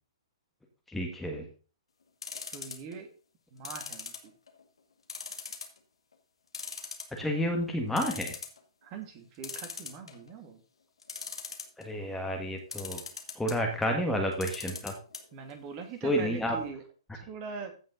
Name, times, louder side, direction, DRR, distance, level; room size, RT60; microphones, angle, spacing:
voice 1, 0.9-1.5 7.2-8.4 11.8-13.0 13.3-14.9 16.0-16.6, equal, 5° left, 2 dB, 1.8 m, -30 dB
sound 1, 2.2-2.9 3.6-4.6 5.1-5.8 6.1-6.2 6.5-7.4 7.7-7.8 8.0-8.6 9.4-10.3 11.0-11.8 12.7-13.6 14.3-15.2 15.5-15.6 15.8-15.9, left 5 dB, 75° left, 2.1 m, -39 dB
voice 2, 2.5-3.1 3.5-4.3 8.8-10.6 15.3-16.8 17.1-17.7, right 5 dB, 35° right, 6 dB, 2.2 m, -42 dB
15.5 x 5.4 x 3.9 m, 0.36 s
figure-of-eight pair, 120°, 3 cm